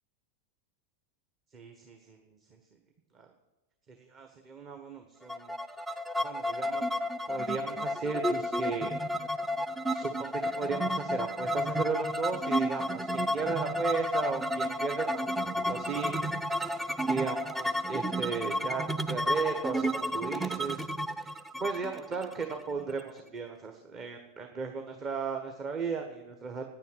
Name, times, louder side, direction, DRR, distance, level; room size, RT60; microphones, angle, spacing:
voice 1, 1.5-2.2 2.5-2.6 3.1-3.3 4.0-5.5 6.2-6.8 7.3-9.0 9.9-16.1 17.0-20.8 21.2-21.3 21.6-26.7, right 5 dB, 30° right, 4 dB, 1.4 m, -36 dB
sound 1, 5.3-23.0, equal, 5° right, 0.5 m, -32 dB
10.0 x 9.1 x 9.7 m, 1.1 s
figure-of-eight pair, 90°, 0 cm